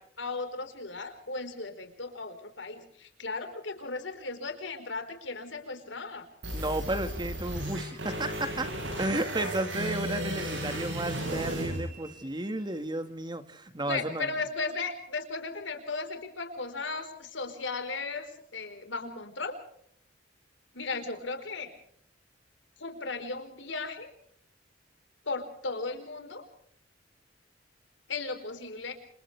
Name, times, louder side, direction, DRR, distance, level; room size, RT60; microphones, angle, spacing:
voice 1, 0.0-6.3 6.9-7.0 13.8-19.6 20.7-21.7 22.8-24.1 25.2-26.4 28.1-28.9, left 3 dB, 80° left, 7 dB, 4.5 m, -36 dB
sound 1, 6.4-12.4, right 1 dB, 80° right, 7.6 m, -35 dB
voice 2, 6.5-8.7 9.0-14.3, right 1 dB, 25° right, 9 dB, 1.8 m, -33 dB
29.5 x 27.0 x 3.4 m, 0.65 s
head